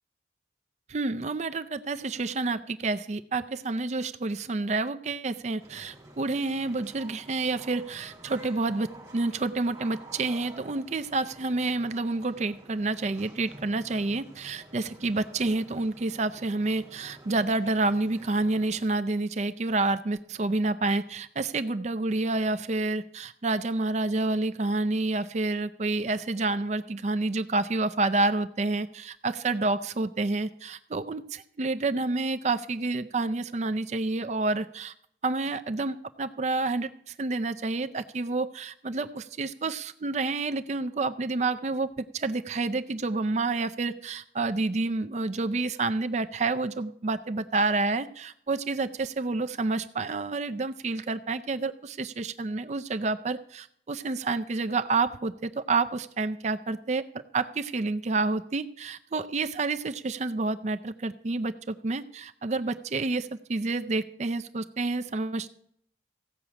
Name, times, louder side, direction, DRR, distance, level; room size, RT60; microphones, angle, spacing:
voice 1, 0.9-34.9 35.2-57.0 57.3-65.5, right 3 dB, 40° right, 10 dB, 0.4 m, -29 dB
sound 1, 5.6-18.8, right 1 dB, 20° right, 3.9 m, -50 dB
15.5 x 6.0 x 8.7 m, 0.68 s
head